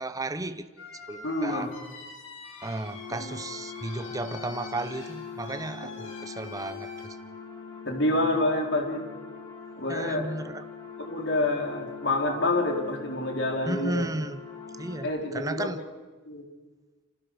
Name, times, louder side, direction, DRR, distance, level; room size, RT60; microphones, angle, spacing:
voice 1, 0.0-1.7 2.6-7.1 9.9-10.6 13.7-14.4 14.8-15.8, right 2 dB, 15° right, 11 dB, 0.8 m, -34 dB
sound 1, 0.8-7.1, left 4 dB, 85° left, 6.3 m, -45 dB
voice 2, 1.2-1.7 3.1-3.4 5.8-5.9 7.8-9.0 9.8-10.3 11.0-14.0 15.0-15.7 16.3-16.4, left 2 dB, 60° left, 2 dB, 4.3 m, -28 dB
sound 2, 2.7-15.0, left 6 dB, 20° left, 7.5 m, -42 dB
28.5 x 26.0 x 5.1 m, 1.3 s
head